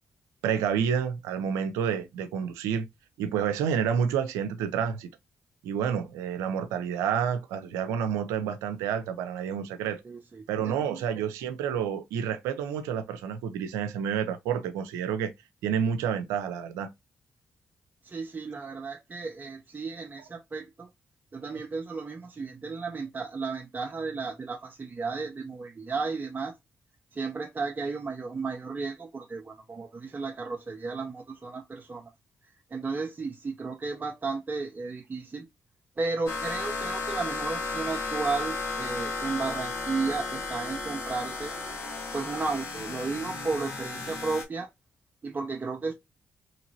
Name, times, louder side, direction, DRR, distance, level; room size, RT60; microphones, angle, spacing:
voice 1, 0.4-2.9 3.2-5.1 5.6-10.0 10.5-15.3 15.6-16.9, right 8 dB, 90° right, 0.4 m, -29 dB
voice 2, 10.0-11.0 18.0-20.9 21.3-26.6 27.1-32.1 32.7-35.5 36.0-41.5 42.1-44.7 45.2-45.9, right 4 dB, 35° right, 0.6 m, -34 dB
sound 1, 36.3-44.4, left 3 dB, 70° left, 1.4 m, -34 dB
2.9 x 2.9 x 2.7 m
supercardioid pair, 45°, 5 cm